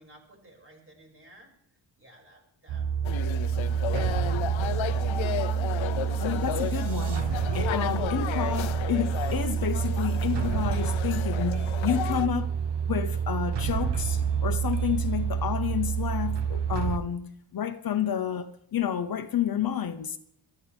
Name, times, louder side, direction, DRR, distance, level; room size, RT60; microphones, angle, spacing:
voice 1, 0.0-1.5 2.0-2.9 3.2-5.0 5.4-6.0, right 1 dB, 30° right, 6.1 m, -57 dB
sound 1, 2.7-17.0, right 7 dB, 65° right, 1.2 m, -28 dB
sound 2, 3.0-12.3, left 11 dB, 90° left, 0.9 m, -34 dB
Bass guitar, 5.1-8.2, right 11 dB, 45° right, 3.9 m, -50 dB
voice 2, 5.8-7.2 7.5-12.5 12.9-20.2, left 9 dB, 50° left, 1.0 m, -30 dB
23.0 x 13.5 x 3.5 m
wide cardioid pair, 145°, 45 cm